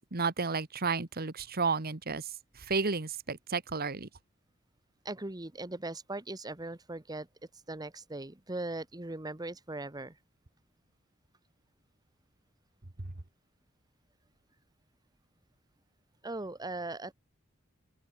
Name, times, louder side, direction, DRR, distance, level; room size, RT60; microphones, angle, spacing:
voice 1, 0.0-2.3 2.5-4.1, right 4 dB, 50° right, 1.5 m, -32 dB
voice 2, 5.0-7.3 7.7-10.2 16.2-17.1, right 2 dB, 20° right, 1.3 m, -39 dB
open air
head